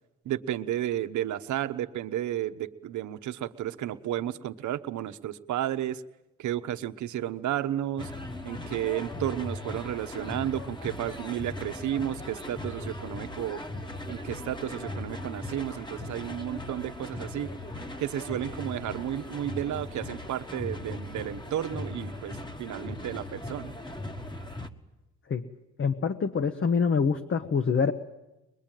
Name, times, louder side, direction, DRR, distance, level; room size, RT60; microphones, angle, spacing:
voice 1, 0.2-6.0 6.4-8.1 8.4-13.6 14.1-17.5 18.0-23.8, right 12 dB, 70° right, 10 dB, 1.0 m, -32 dB
sound 1, 8.0-24.7, left 1 dB, 15° left, 1.4 m, -38 dB
voice 2, 25.8-27.9, left 5 dB, 40° left, 8 dB, 1.1 m, -25 dB
22.0 x 21.5 x 9.1 m, 0.99 s
cardioid pair, 90°, 30 cm